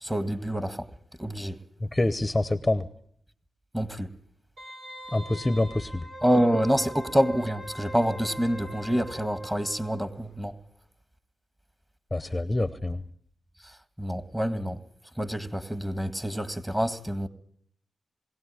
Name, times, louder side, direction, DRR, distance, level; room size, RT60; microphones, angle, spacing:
voice 1, 0.0-0.9 1.2-1.6 3.7-4.1 6.2-10.5 14.0-14.8 15.2-17.3, equal, 10° right, 1.7 m, -27 dB
voice 2, 1.8-2.9 5.1-6.0 12.1-13.0, left 2 dB, 15° left, 0.9 m, -26 dB
Wind instrument woodwind instrument, 4.6-10.1 10.4-10.5, equal, 80° right, 6.8 m, -42 dB
21.5 x 17.0 x 9.9 m
cardioid pair, 75°, 0 cm